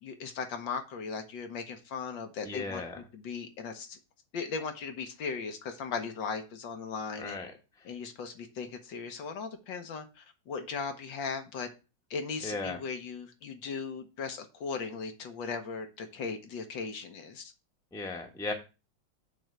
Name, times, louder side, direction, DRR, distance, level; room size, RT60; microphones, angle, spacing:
voice 1, 0.0-2.8 3.1-4.0 4.3-7.4 7.9-11.7 12.1-17.5, left 5 dB, 70° left, 6 dB, 1.8 m, -37 dB
voice 2, 2.4-3.0 7.2-7.5 7.8-7.9 12.4-12.8 17.9-18.5, left 3 dB, ahead, 2 dB, 1.0 m, -36 dB
7.7 x 3.6 x 6.5 m, 0.30 s
omnidirectional pair, 2.1 m